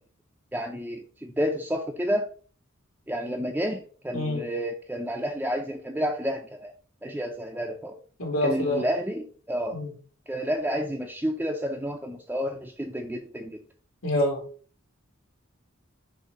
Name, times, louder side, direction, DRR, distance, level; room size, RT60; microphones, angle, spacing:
voice 1, 0.5-2.3 3.1-6.7 7.0-8.0 8.4-9.8 10.3-13.6, equal, 10° right, 0 dB, 0.6 m, -30 dB
voice 2, 4.1-4.4 8.2-8.8 9.7-9.9 14.0-14.4, left 1 dB, 80° left, -1 dB, 2.8 m, -26 dB
6.5 x 2.8 x 5.5 m, 0.42 s
head